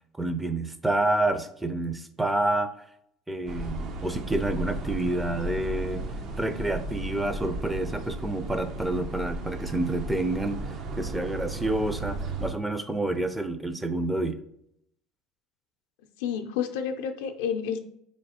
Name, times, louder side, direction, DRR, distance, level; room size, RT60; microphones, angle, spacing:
voice 1, 0.2-2.7 3.3-6.0 6.4-14.4, right 2 dB, 10° right, 9 dB, 0.4 m, -28 dB
sound 1, 3.5-12.5, right 2 dB, 55° right, 0.6 m, -35 dB
voice 2, 16.2-17.8, left 7 dB, 85° left, 6 dB, 0.4 m, -30 dB
4.0 x 3.1 x 2.8 m, 0.74 s
supercardioid pair, 95°, 0 cm